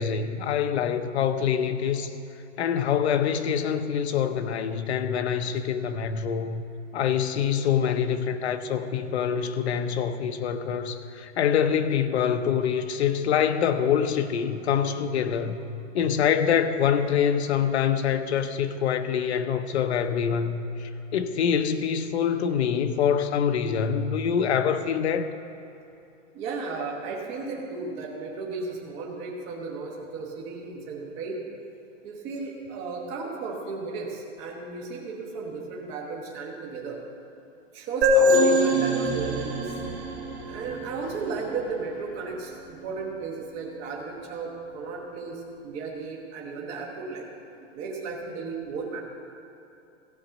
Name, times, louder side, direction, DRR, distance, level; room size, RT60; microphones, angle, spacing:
voice 1, 0.0-2.1 2.6-6.6 6.9-15.6 15.9-25.3, left 8 dB, 55° left, 9 dB, 0.8 m, -25 dB
voice 2, 26.3-31.4 32.0-37.0 37.7-39.7 40.4-47.3 47.6-49.0, right 4 dB, 15° right, -1 dB, 1.1 m, -34 dB
sound 1, 38.0-41.6, left 1 dB, 50° right, 2.7 m, -23 dB
15.5 x 5.2 x 7.0 m, 2.8 s
hypercardioid pair, 175°, 38 cm